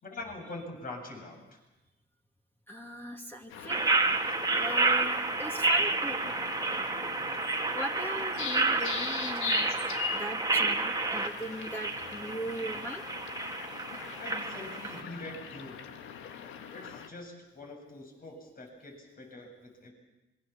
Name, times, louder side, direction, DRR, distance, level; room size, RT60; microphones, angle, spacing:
voice 1, 0.0-1.6 14.2-15.8 16.7-19.9, left 2 dB, 45° left, 2 dB, 7.5 m, -44 dB
voice 2, 2.7-4.1 4.5-6.2 6.7-6.8 7.7-9.7 10.1-13.0, equal, 10° left, 2 dB, 2.6 m, -39 dB
sound 1, 3.5-17.1, left 7 dB, 85° left, 1.8 m, -41 dB
sound 2, 3.7-15.0, right 3 dB, 20° right, 2.0 m, -30 dB
26.5 x 22.5 x 7.2 m, 0.99 s
cardioid pair, 85°, 20 cm